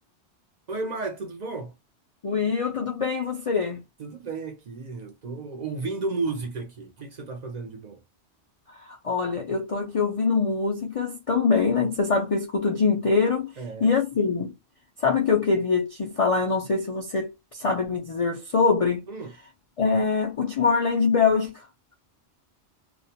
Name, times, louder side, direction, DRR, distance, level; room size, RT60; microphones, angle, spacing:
voice 1, 0.7-1.7 4.0-8.0 13.6-13.9 19.1-19.3, right 3 dB, 55° right, 0.5 m, -33 dB
voice 2, 2.2-3.8 8.7-13.5 13.8-14.5 15.0-19.0 19.8-21.7, left 5 dB, 55° left, 0.3 m, -24 dB
2.4 x 2.1 x 2.7 m
omnidirectional pair, 1.2 m